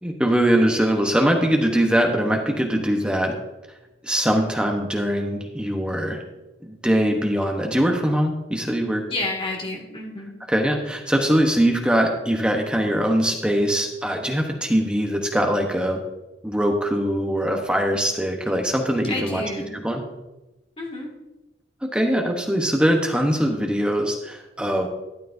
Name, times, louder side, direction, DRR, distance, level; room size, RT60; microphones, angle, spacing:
voice 1, 0.0-3.3 4.0-6.2 6.6-9.0 10.5-16.0 16.4-19.4 19.7-20.0 21.9-24.9, equal, 5° right, 2 dB, 1.0 m, -22 dB
voice 2, 9.1-10.4 19.1-19.7 20.8-21.1, left 2 dB, 30° left, -1 dB, 1.9 m, -30 dB
12.5 x 9.4 x 2.7 m, 1.0 s
head